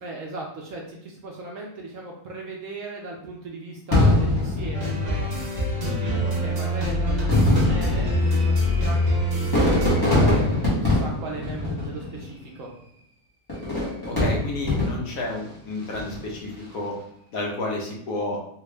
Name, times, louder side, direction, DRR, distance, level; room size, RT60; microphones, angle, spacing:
voice 1, 0.0-5.3 5.7-12.7, right 3 dB, 65° right, -1 dB, 0.9 m, -38 dB
Fireworks, 3.9-5.5 6.4-6.5 7.1-12.4 13.5-15.3 15.8-16.3, left 2 dB, 15° left, 1.0 m, -23 dB
sound 1, 4.7-10.0, left 1 dB, 35° right, 0.9 m, -24 dB
voice 2, 5.8-6.2 10.1-10.4 14.0-17.0 17.3-18.4, left 2 dB, 65° left, -2 dB, 1.2 m, -31 dB
3.4 x 2.4 x 3.2 m, 0.72 s
omnidirectional pair, 1.7 m